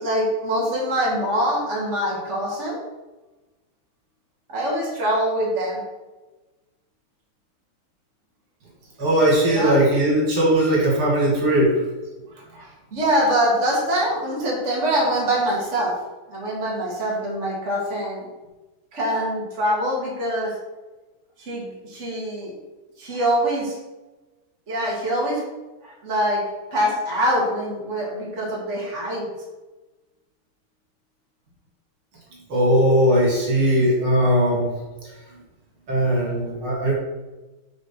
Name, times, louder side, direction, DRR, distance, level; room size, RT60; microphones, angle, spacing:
voice 1, 0.0-2.8 4.5-5.8 9.5-9.8 12.4-15.9 16.3-18.2 18.9-20.6 21.4-22.5 23.0-23.8 24.7-25.4 25.8-26.4 26.7-29.3, equal, 35° right, -4 dB, 2.5 m, -24 dB
voice 2, 9.0-11.8 32.5-34.7 35.9-36.9, right 1 dB, 75° right, -3 dB, 3.3 m, -19 dB
8.4 x 4.8 x 6.1 m, 1.1 s
omnidirectional pair, 2.3 m